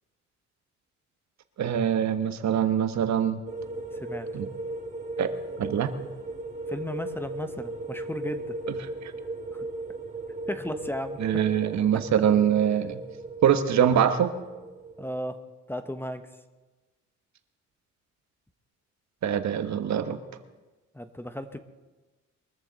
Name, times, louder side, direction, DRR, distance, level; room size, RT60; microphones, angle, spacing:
voice 1, 1.6-3.4 4.3-4.5 5.2-5.3 5.6-5.9 11.2-13.0 13.4-14.4 19.2-20.2, right 9 dB, 65° right, 9 dB, 1.2 m, -23 dB
sound 1, 3.5-15.1, right 2 dB, 25° right, 2.8 m, -37 dB
voice 2, 3.9-4.3 6.7-8.6 9.5-9.7 10.5-11.2 11.9-12.0 15.0-15.4 15.7-16.3 20.9-21.6, equal, 5° left, 9 dB, 0.9 m, -35 dB
22.5 x 14.0 x 4.0 m, 1.2 s
cardioid pair, 90°, 30 cm